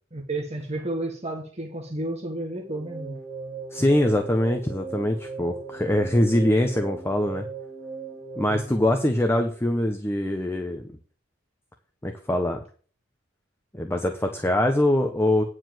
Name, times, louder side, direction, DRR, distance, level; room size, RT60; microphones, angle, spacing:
voice 1, 0.1-3.2 8.5-8.8, right 2 dB, 35° right, 1.6 m, -32 dB
sound 1, 2.5-9.7, right 5 dB, 30° left, 4.3 m, -39 dB
voice 2, 3.7-7.5 8.4-10.9 12.0-12.6 13.8-15.4, left 1 dB, 10° left, 0.9 m, -23 dB
9.8 x 4.8 x 7.7 m
head